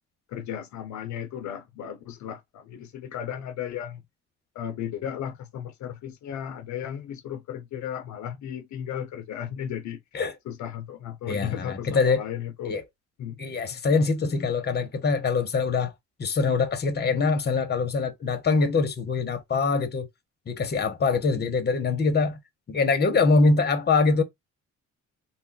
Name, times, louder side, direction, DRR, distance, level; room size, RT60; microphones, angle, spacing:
voice 1, 0.3-4.0 4.5-10.0 10.5-12.7 13.2-13.8, left 9 dB, 70° left, 0.5 m, -35 dB
voice 2, 11.3-12.2 12.7-12.8 13.4-15.9 16.2-20.1 20.5-22.4 22.7-24.2, left 4 dB, 35° left, 0.7 m, -23 dB
2.2 x 2.0 x 3.6 m
cardioid pair, 90°, 30 cm